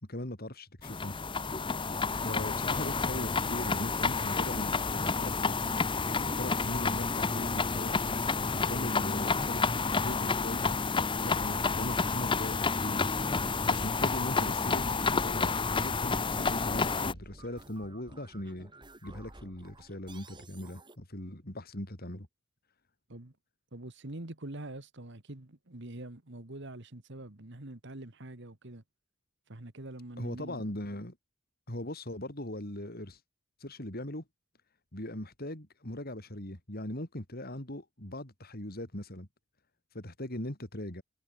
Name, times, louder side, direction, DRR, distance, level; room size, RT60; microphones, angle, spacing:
voice 1, 0.1-1.2 2.2-5.6 6.2-8.1 8.4-10.8 11.2-13.1 13.7-18.7 19.0-22.3 30.2-31.2 31.7-33.2 33.6-34.2 34.9-39.3 39.9-41.0, left 1 dB, 45° left, 3.9 m, -40 dB
sound 1, 0.8-17.1, left 4 dB, 25° left, 0.9 m, -30 dB
sound 2, 14.6-21.0, right 1 dB, 20° right, 6.7 m, -52 dB
voice 2, 23.7-28.8 29.5-30.6, right 1 dB, 55° right, 1.9 m, -44 dB
head